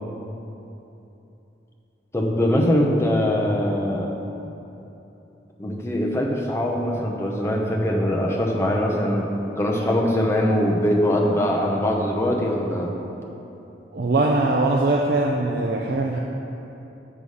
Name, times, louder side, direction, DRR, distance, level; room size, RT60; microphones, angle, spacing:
voice 1, 2.1-4.1 5.6-9.3 9.6-12.9, left 1 dB, 15° left, -1 dB, 0.7 m, -22 dB
voice 2, 13.9-16.2, right 2 dB, 55° right, 0 dB, 0.5 m, -21 dB
6.9 x 5.5 x 6.3 m, 3.0 s
head